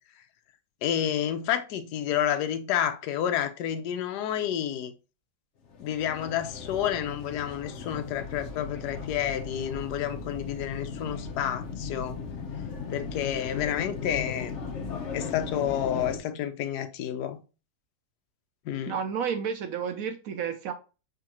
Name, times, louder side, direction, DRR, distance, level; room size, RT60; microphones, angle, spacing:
voice 1, 0.8-4.9 5.8-12.2 12.9-14.6 15.1-17.4 18.7-19.0, left 10 dB, 70° left, 1.1 m, -30 dB
sound 1, 5.6-16.2, left 5 dB, 55° left, 0.8 m, -37 dB
voice 2, 18.9-20.7, right 7 dB, 75° right, 0.8 m, -31 dB
5.0 x 3.7 x 2.9 m
omnidirectional pair, 1.9 m